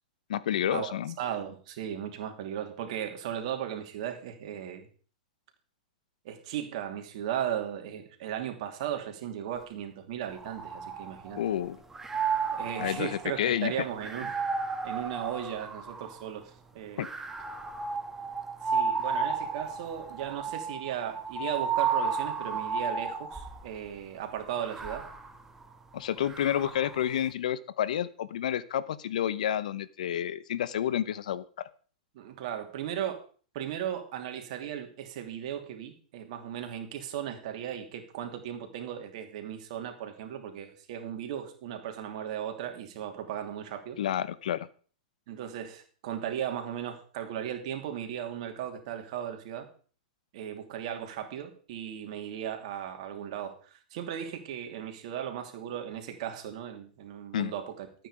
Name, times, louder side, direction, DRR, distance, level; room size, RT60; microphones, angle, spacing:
voice 1, 0.3-1.1 11.3-11.8 12.8-13.7 17.0-17.1 25.9-31.4 44.0-44.7 57.3-57.5, left 10 dB, 75° left, 17 dB, 0.9 m, -30 dB
voice 2, 1.2-4.9 6.2-11.4 12.5-14.3 14.8-17.1 18.6-25.1 26.6-26.7 32.1-33.2 33.5-44.0 45.3-49.7 50.3-57.9, right 10 dB, 60° right, 5 dB, 2.8 m, -36 dB
sound 1, 10.3-11.5 11.9-16.3 17.0-23.7 24.4-27.0, right 5 dB, 10° right, 1.5 m, -33 dB
13.5 x 9.0 x 5.0 m, 0.42 s
hypercardioid pair, 120°, 4 cm